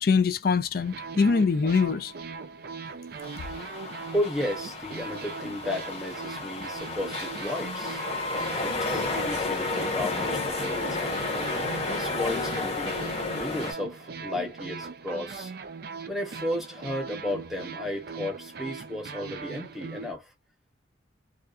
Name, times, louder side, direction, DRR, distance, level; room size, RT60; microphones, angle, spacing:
voice 1, 0.0-2.1, left 5 dB, 50° left, 0.4 m, -23 dB
transmission sent yet confused, 0.8-20.1, right 5 dB, 50° right, 0.4 m, -40 dB
sound 1, 3.2-13.7, left 3 dB, 30° left, 0.8 m, -32 dB
voice 2, 4.1-8.0 8.5-11.2 11.8-12.9 13.3-15.5 16.1-20.3, left 1 dB, ahead, 0.8 m, -33 dB
2.4 x 2.3 x 2.4 m
head